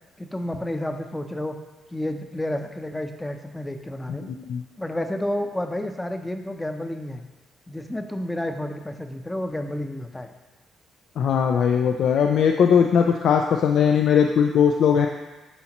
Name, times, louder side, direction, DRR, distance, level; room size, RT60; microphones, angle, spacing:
voice 1, 0.2-1.6 1.9-4.3 4.8-7.3 7.7-10.3, left 1 dB, 10° left, 6 dB, 0.6 m, -30 dB
voice 2, 4.1-4.6 11.2-15.1, left 7 dB, 70° left, 4 dB, 0.4 m, -19 dB
9.6 x 4.2 x 2.9 m, 1.2 s
cardioid pair, 90°, 0 cm